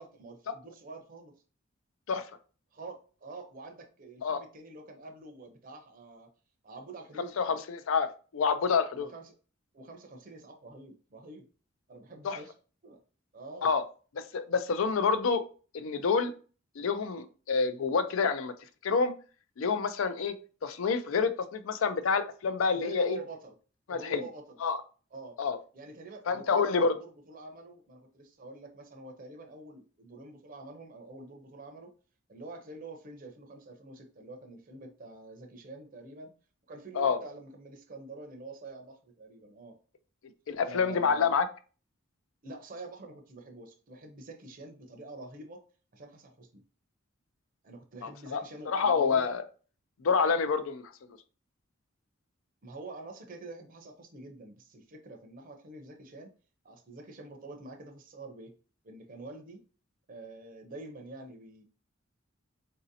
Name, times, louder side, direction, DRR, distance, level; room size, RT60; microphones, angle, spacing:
voice 1, 0.0-1.3 2.7-6.3 6.6-7.3 8.9-9.3 9.7-11.5 11.9-12.5 12.8-13.0 13.3-13.7 22.6-23.5 23.9-24.6 25.1-25.4 25.7-31.9 32.3-36.3 36.7-39.7 40.6-41.3 42.4-45.6 45.9-46.6 47.6-49.3 52.6-56.3 56.6-58.5 58.8-59.6 60.1-61.6, right 3 dB, 45° right, 3 dB, 0.6 m, -46 dB
voice 2, 7.4-9.1 12.2-12.4 13.6-13.8 14.1-15.4 15.7-16.3 16.8-18.5 18.8-19.2 19.6-20.3 20.6-23.2 23.9-24.2 24.6-24.8 25.4-25.6 26.3-27.0 37.0-37.2 40.5-41.5 48.0-49.4 50.0-50.9, left 5 dB, 75° left, 11 dB, 0.4 m, -28 dB
4.0 x 2.6 x 2.6 m, 0.38 s
head